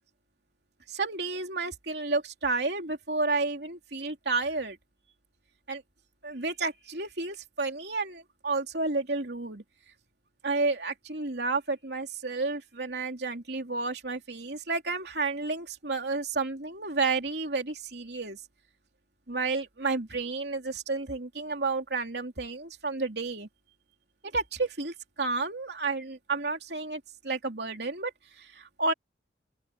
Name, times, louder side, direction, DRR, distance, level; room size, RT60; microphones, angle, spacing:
voice 1, 0.9-4.8 5.7-5.8 6.2-9.6 10.4-18.4 19.3-23.5 24.2-28.1 28.4-28.9, right 3 dB, 65° right, 3.4 m, -31 dB
open air
head